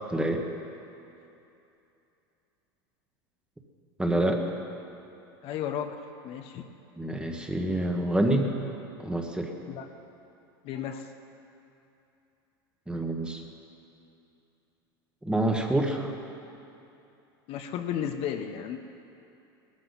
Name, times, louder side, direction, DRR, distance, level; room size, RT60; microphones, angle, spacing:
voice 1, 0.1-0.4 4.0-4.4 7.0-8.5 9.0-9.5 12.9-13.4 15.2-16.1, right 1 dB, 5° right, 3 dB, 1.5 m, -27 dB
voice 2, 5.4-6.7 9.7-9.9 10.6-11.1 17.5-18.8, left 9 dB, 50° left, 6 dB, 0.9 m, -34 dB
18.0 x 13.5 x 4.1 m, 2.8 s
hypercardioid pair, 105°, 13 cm